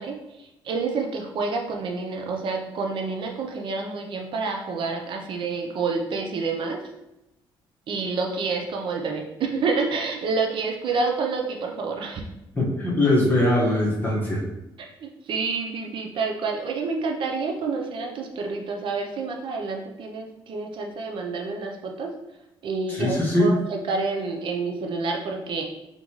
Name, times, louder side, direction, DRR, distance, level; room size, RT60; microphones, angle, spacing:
voice 1, 0.0-6.8 7.9-12.2 14.8-22.1 22.6-25.6, right 4 dB, 65° right, 2 dB, 0.6 m, -28 dB
voice 2, 12.5-14.4 22.9-23.6, left 1 dB, 20° left, -5 dB, 1.4 m, -21 dB
3.9 x 3.6 x 3.1 m, 0.91 s
cardioid pair, 115°, 9 cm